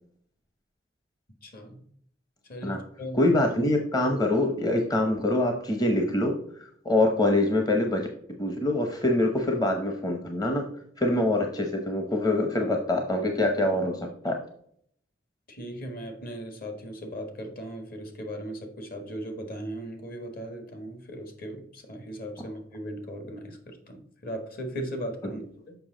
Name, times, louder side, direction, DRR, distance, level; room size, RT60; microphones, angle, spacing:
voice 1, 1.4-1.8 2.5-3.3 6.9-7.1 15.5-24.0 24.2-25.7, equal, 50° left, 5 dB, 1.6 m, -38 dB
voice 2, 3.1-6.3 6.8-8.1 8.4-10.6 11.0-14.4 25.2-25.4, left 1 dB, 20° left, 3 dB, 0.8 m, -25 dB
6.9 x 5.7 x 3.8 m, 0.66 s
head